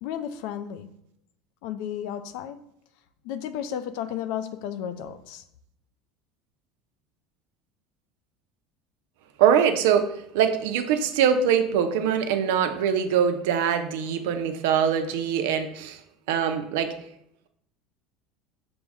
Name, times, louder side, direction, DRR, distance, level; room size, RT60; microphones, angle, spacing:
voice 1, 0.0-0.9 1.6-2.6 3.2-5.4, left 9 dB, 70° left, 10 dB, 0.4 m, -33 dB
voice 2, 9.4-16.0 16.3-16.9, right 8 dB, 80° right, 8 dB, 0.4 m, -23 dB
5.9 x 2.1 x 3.5 m, 0.74 s
supercardioid pair, 140°, 0 cm